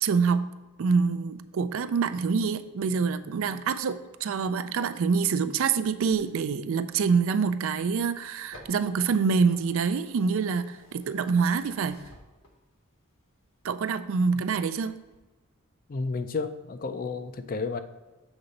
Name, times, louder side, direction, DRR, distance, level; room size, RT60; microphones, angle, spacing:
voice 1, 0.0-12.0 13.6-15.0, right 5 dB, 65° right, 0.4 m, -26 dB
sound 1, 5.8-12.9 13.3-14.3 14.7-15.2, left 1 dB, 65° left, 1.2 m, -55 dB
voice 2, 15.9-17.8, left 4 dB, 40° left, 0.4 m, -31 dB
7.1 x 3.9 x 5.2 m
head